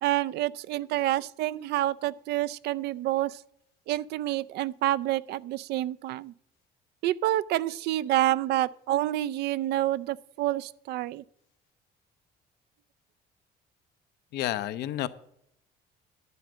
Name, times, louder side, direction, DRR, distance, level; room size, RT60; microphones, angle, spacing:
voice 1, 0.0-3.4 3.9-6.3 7.0-11.2, right 14 dB, 75° right, 0.4 m, -28 dB
voice 2, 14.3-15.1, left 13 dB, 75° left, 0.7 m, -30 dB
11.0 x 5.1 x 7.4 m
cardioid pair, 110°, 17 cm